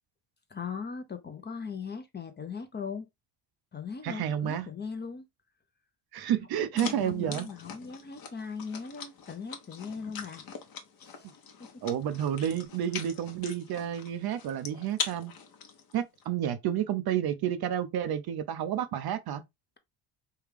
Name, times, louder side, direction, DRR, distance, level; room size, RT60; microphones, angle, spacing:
voice 1, 0.5-3.1 3.7-5.3 6.7-10.4 11.0-11.3 11.6-11.8, left 5 dB, 20° left, 0.6 m, -39 dB
voice 2, 4.0-4.7 6.1-7.5 11.8-15.3 15.9-19.4, right 10 dB, 50° right, 0.6 m, -30 dB
sound 1, 6.8-16.2, left 6 dB, 45° left, 0.9 m, -42 dB
3.4 x 2.3 x 3.3 m
supercardioid pair, 85°, 48 cm